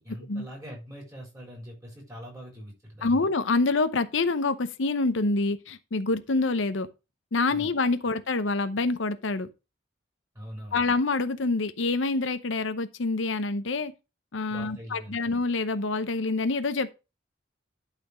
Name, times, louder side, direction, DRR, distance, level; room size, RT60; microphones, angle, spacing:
voice 1, 0.0-3.3 7.5-7.7 10.3-10.9 14.5-15.3, equal, 15° right, 3.9 m, -42 dB
voice 2, 3.0-6.9 7.3-9.5 10.7-13.9 14.3-16.9, left 3 dB, 80° left, 0.8 m, -26 dB
11.5 x 4.3 x 5.0 m
head